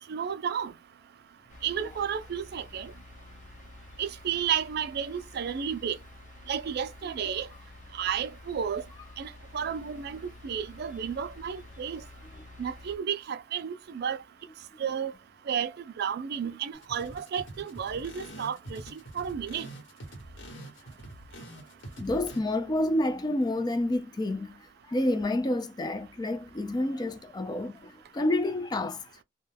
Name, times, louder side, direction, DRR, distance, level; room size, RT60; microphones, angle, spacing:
voice 1, 0.1-0.7 1.6-2.9 4.0-6.0 6.5-7.5 7.9-8.8 9.2-9.3 9.5-10.2 10.4-12.0 12.6-14.2 14.8-15.1 15.5-15.7 16.0-19.7, right 8 dB, 60° right, 0.4 m, -32 dB
sound 1, 1.5-12.9, left 2 dB, 40° left, 0.8 m, -50 dB
sound 2, 16.7-22.4, right 1 dB, 80° left, 1.2 m, -45 dB
voice 2, 22.0-24.6 24.9-29.0, left 1 dB, 20° left, 0.3 m, -29 dB
2.2 x 2.1 x 3.2 m
head